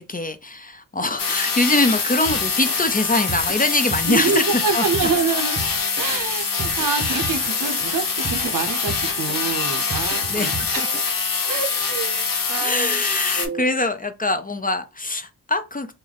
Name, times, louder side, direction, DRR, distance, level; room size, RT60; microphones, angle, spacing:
voice 1, 0.0-4.9 10.3-10.5 10.8-10.9 12.6-15.9, left 2 dB, 25° left, 0.5 m, -23 dB
sound 1, 1.2-13.5, left 5 dB, 60° left, 0.9 m, -24 dB
Drum kit, 2.3-11.0, right 3 dB, 30° right, 0.8 m, -34 dB
voice 2, 4.1-5.6 6.0-11.0 11.5-13.0 13.4-13.7, right 5 dB, 60° right, 0.6 m, -27 dB
3.2 x 2.1 x 3.8 m
wide cardioid pair, 70°, 36 cm